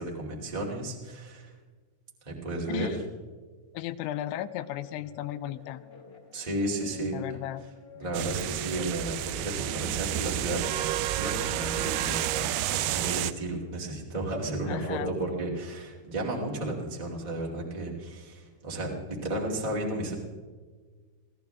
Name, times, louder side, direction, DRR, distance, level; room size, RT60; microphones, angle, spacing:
voice 1, 0.0-1.5 2.2-2.9 6.3-7.1 8.0-20.1, right 2 dB, 15° right, -3 dB, 1.3 m, -33 dB
voice 2, 3.7-5.9 7.1-7.7 14.7-15.1, left 13 dB, 90° left, 14 dB, 3.0 m, -35 dB
Guitar, 4.2-9.7, left 5 dB, 25° left, 2.2 m, -51 dB
sound 1, 8.1-13.3, right 13 dB, 80° right, 2.4 m, -30 dB
23.5 x 17.0 x 3.5 m, 1.5 s
omnidirectional pair, 5.2 m